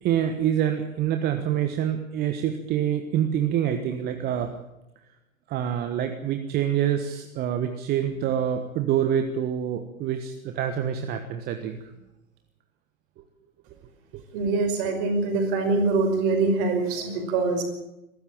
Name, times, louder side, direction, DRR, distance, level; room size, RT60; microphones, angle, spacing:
voice 1, 0.0-4.5 5.5-11.8 14.1-14.5, right 9 dB, 25° right, 7 dB, 1.4 m, -26 dB
voice 2, 14.3-17.6, right 3 dB, 40° right, 5 dB, 5.4 m, -24 dB
23.0 x 13.5 x 8.9 m, 0.93 s
figure-of-eight pair, 110°, 40 cm